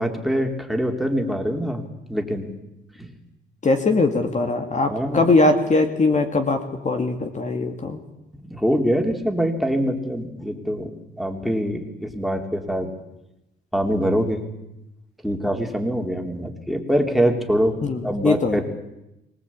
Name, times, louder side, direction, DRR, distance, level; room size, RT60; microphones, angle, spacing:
voice 1, 0.0-2.5 3.0-3.1 4.9-5.3 8.3-12.9 13.7-14.5 15.2-17.8 18.0-18.6, equal, ahead, 4 dB, 3.5 m, -24 dB
voice 2, 3.6-8.0 17.8-18.6, left 3 dB, 35° left, 5 dB, 2.5 m, -21 dB
24.5 x 18.5 x 8.7 m, 0.90 s
cardioid pair, 90°, 20 cm